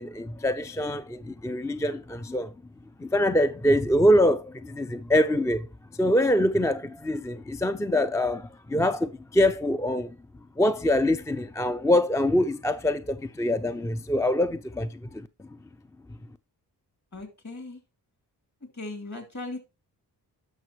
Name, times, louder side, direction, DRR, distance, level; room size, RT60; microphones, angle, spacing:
voice 1, 0.0-2.5 3.0-5.7 5.9-10.2 10.6-15.6 16.1-16.2, left 1 dB, 10° left, 0.4 m, -24 dB
voice 2, 17.1-17.8 18.7-19.6, left 2 dB, 45° left, 2.9 m, -37 dB
11.0 x 5.9 x 3.0 m
cardioid pair, 55°, 40 cm